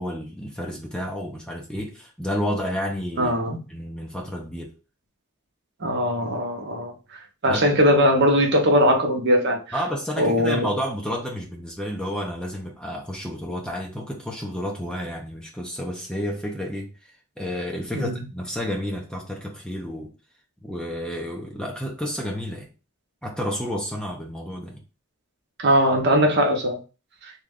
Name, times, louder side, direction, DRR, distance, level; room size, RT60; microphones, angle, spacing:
voice 1, 0.0-4.7 7.5-7.6 9.7-16.9 17.4-20.1 20.6-22.7 23.2-24.8, equal, 5° left, 0.6 m, -30 dB
voice 2, 3.2-3.6 5.8-6.9 7.4-9.6 10.2-10.7 17.9-18.2 25.6-26.8, equal, 50° right, 0.7 m, -20 dB
3.0 x 2.4 x 3.5 m
head